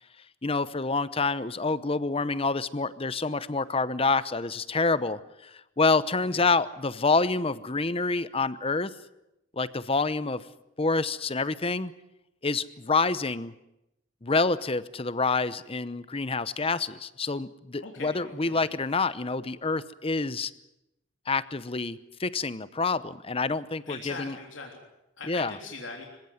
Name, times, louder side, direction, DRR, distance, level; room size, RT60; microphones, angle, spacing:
voice 1, 0.4-8.9 9.5-10.4 10.8-11.9 12.4-13.5 14.2-20.5 21.3-24.4 25.3-25.5, left 3 dB, 30° left, 16 dB, 0.8 m, -27 dB
voice 2, 17.8-18.6 23.8-24.8 25.2-26.1, left 3 dB, 75° left, 1 dB, 3.5 m, -41 dB
26.0 x 16.5 x 9.4 m, 0.90 s
head